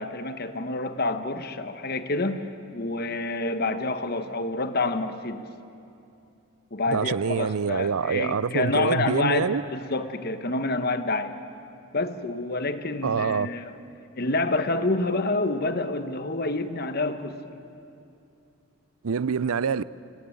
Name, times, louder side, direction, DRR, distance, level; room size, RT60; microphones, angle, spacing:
voice 1, 0.0-5.5 6.7-11.3 11.9-13.8 14.1-17.4, left 2 dB, 45° left, 1.1 m, -28 dB
voice 2, 6.9-9.6 13.0-13.5 19.0-19.8, right 6 dB, 80° right, 0.5 m, -25 dB
27.0 x 17.5 x 9.1 m
head